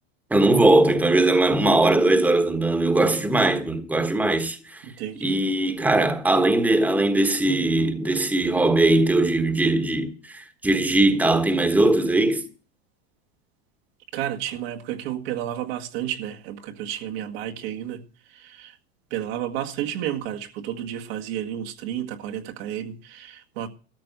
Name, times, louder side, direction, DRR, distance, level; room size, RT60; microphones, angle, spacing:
voice 1, 0.3-4.9 5.2-12.4, right 2 dB, 5° right, 1.4 m, -20 dB
voice 2, 4.8-5.4 14.1-18.0 18.3-18.8 19.1-23.7, right 11 dB, 70° right, 2.0 m, -31 dB
13.5 x 6.9 x 7.9 m
supercardioid pair, 135°, 32 cm